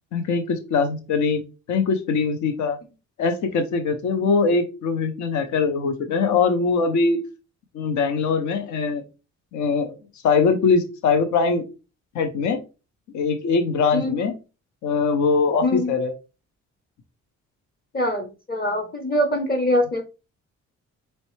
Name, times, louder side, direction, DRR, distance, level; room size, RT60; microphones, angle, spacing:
voice 1, 0.1-1.4 1.7-2.8 3.2-7.2 7.7-9.0 9.5-9.9 10.2-11.6 12.1-12.6 13.1-14.3 14.8-16.1, left 4 dB, 70° left, 7 dB, 0.8 m, -22 dB
voice 2, 13.9-14.2 15.6-15.9 17.9-20.0, left 1 dB, 30° left, 5 dB, 0.8 m, -23 dB
4.3 x 3.2 x 3.2 m, 0.31 s
cardioid pair, 90°, 30 cm